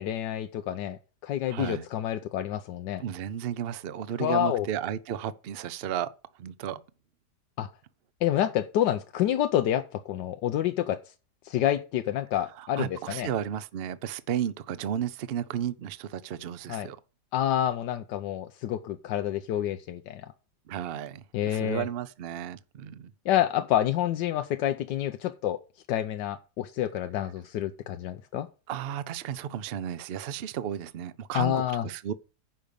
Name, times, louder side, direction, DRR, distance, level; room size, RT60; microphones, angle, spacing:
voice 1, 0.0-3.0 4.2-4.7 7.6-7.7 8.2-11.0 11.4-13.3 16.7-16.9 17.3-20.3 21.3-21.8 23.3-25.6 25.9-28.5 31.3-31.8, left 11 dB, 90° left, 1.3 m, -28 dB
voice 2, 1.5-1.8 3.0-6.1 6.4-6.8 12.6-17.0 20.7-23.1 28.7-32.1, right 9 dB, 60° right, 0.6 m, -33 dB
10.0 x 5.3 x 6.8 m
omnidirectional pair, 1.8 m